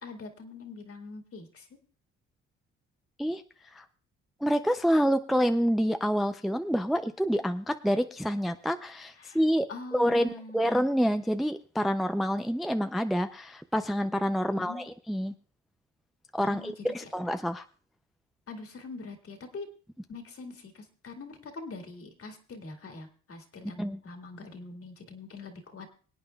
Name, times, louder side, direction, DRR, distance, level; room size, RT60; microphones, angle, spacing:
voice 1, 0.0-1.8 9.2-9.4 9.7-10.7 14.5-14.8 16.4-17.1 18.5-19.7 20.1-25.9, left 3 dB, 50° left, 3 dB, 2.2 m, -43 dB
voice 2, 4.4-15.3 16.3-17.7 23.8-24.0, equal, ahead, 8 dB, 0.4 m, -27 dB
24.5 x 8.7 x 2.3 m, 0.39 s
cardioid pair, 90°, 30 cm